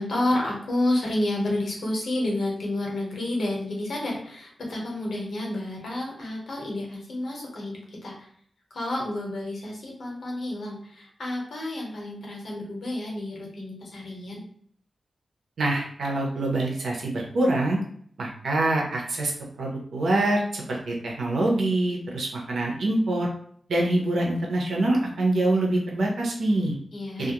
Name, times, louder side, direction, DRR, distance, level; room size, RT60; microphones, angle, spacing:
voice 1, 0.0-8.3 8.7-14.4 26.9-27.3, left 1 dB, 70° left, -2 dB, 0.9 m, -30 dB
voice 2, 15.6-17.8 18.2-19.3 19.6-23.3 23.7-26.8 27.2-27.3, right 2 dB, 85° right, -1 dB, 0.7 m, -25 dB
2.3 x 2.1 x 2.9 m, 0.62 s
wide cardioid pair, 110°, 0 cm